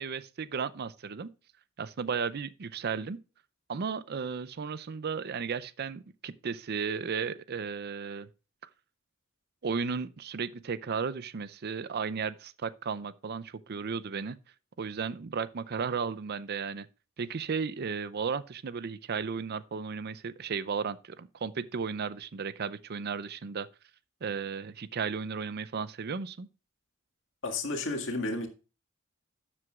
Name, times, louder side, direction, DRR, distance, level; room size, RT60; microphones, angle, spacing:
voice 1, 0.0-1.3 1.8-3.2 3.7-8.3 8.6-8.7 9.6-14.4 14.8-16.9 17.2-23.7 24.2-26.5, right 5 dB, 50° right, 0.5 m, -34 dB
voice 2, 27.4-28.5, left 2 dB, 65° left, 2.0 m, -32 dB
12.0 x 7.7 x 2.4 m
head